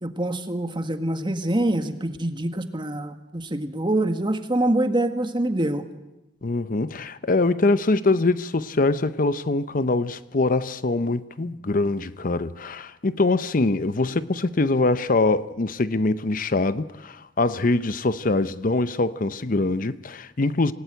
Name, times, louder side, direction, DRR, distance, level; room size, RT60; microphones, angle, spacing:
voice 1, 0.0-5.8, right 1 dB, 25° right, 1.7 m, -25 dB
voice 2, 6.4-20.7, left 2 dB, 50° left, 0.8 m, -23 dB
27.0 x 17.5 x 9.1 m
head